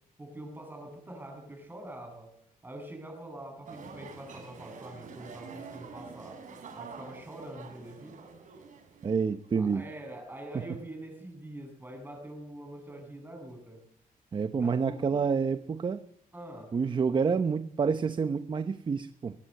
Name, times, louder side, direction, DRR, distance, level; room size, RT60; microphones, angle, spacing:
voice 1, 0.2-2.4 2.6-6.4 6.7-8.2 9.6-13.9 14.6-15.2 16.3-16.7, right 1 dB, 15° right, 4 dB, 7.6 m, -44 dB
sound 1, 3.7-9.5, right 5 dB, 60° right, 6.7 m, -47 dB
voice 2, 9.0-9.8 14.3-16.0 16.7-19.3, right 5 dB, 30° right, 11 dB, 0.9 m, -28 dB
22.0 x 20.5 x 7.9 m, 0.70 s
cardioid pair, 145°, 15 cm